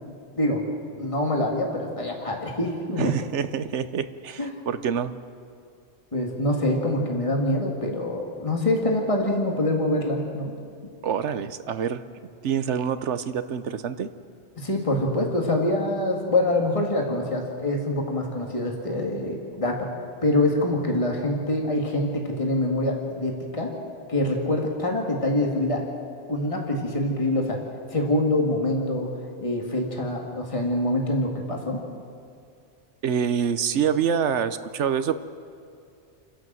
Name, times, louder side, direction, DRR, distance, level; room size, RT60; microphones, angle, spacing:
voice 1, 1.0-3.1 4.4-4.5 6.1-10.5 14.6-19.9 20.2-23.7 24.1-25.9 26.3-27.6 27.9-29.1 29.4-31.8, left 1 dB, 30° left, 0 dB, 2.3 m, -25 dB
voice 2, 3.0-5.1 11.0-12.0 12.4-14.1 33.0-35.2, right 7 dB, 85° right, 12 dB, 1.1 m, -26 dB
29.0 x 11.5 x 7.6 m, 2.3 s
omnidirectional pair, 1.2 m